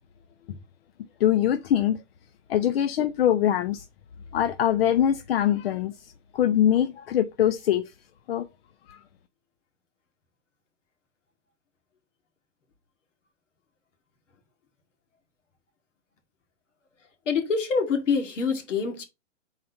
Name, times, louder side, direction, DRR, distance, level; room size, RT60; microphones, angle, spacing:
voice 1, 1.2-2.0 2.5-3.8 4.3-7.8 8.3-8.4 8.9-9.0, left 10 dB, 55° left, 0.6 m, -23 dB
voice 2, 17.3-19.0, left 5 dB, 85° left, 2.0 m, -25 dB
4.2 x 4.1 x 5.4 m
hypercardioid pair, 145°, 36 cm